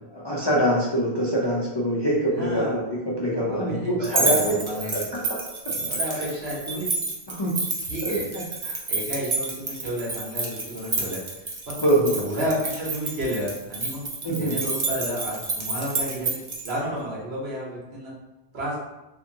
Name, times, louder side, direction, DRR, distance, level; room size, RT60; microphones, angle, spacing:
voice 1, 0.2-4.5 4.9-5.2 6.1-6.2 7.3-7.6 8.0-8.2 8.7-8.8 11.8-12.1 14.2-14.5, right 1 dB, 40° left, -7 dB, 0.4 m, -24 dB
voice 2, 2.3-2.8 3.2-4.9 5.7-6.9 7.8-8.3 8.9-11.8 12.1-18.1 18.5-18.8, equal, 80° right, -5 dB, 1.1 m, -31 dB
sound 1, 4.0-16.7, right 3 dB, 45° right, 0.4 m, -29 dB
2.6 x 2.6 x 2.6 m, 0.98 s
omnidirectional pair, 1.0 m